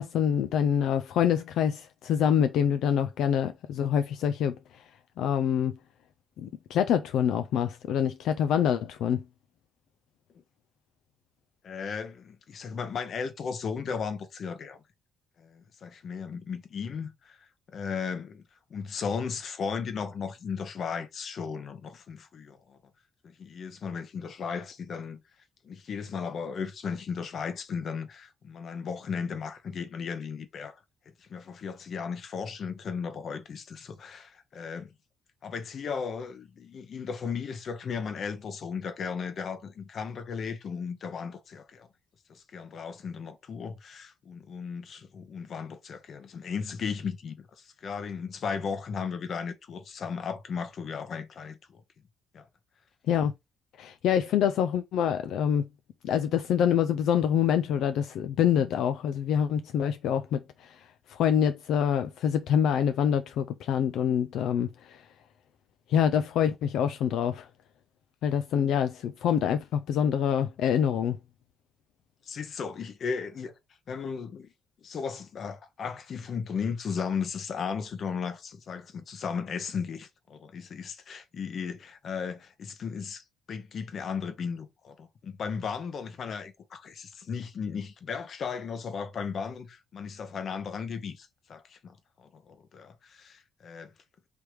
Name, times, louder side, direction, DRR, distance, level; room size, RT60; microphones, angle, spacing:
voice 1, 0.0-4.8 5.2-5.8 6.4-9.2 53.1-53.3 53.8-55.7 56.0-65.0 65.9-67.5 68.2-71.2, left 8 dB, 80° left, 0.3 m, -26 dB
voice 2, 11.6-14.8 15.4-18.4 18.7-22.8 23.2-25.2 25.6-30.8 31.3-34.9 35.4-41.9 42.3-51.8 52.3-52.5 72.2-73.5 73.9-74.5 74.8-93.9, left 6 dB, 55° left, 1.0 m, -36 dB
3.3 x 3.1 x 4.7 m
cardioid pair, 90°, 0 cm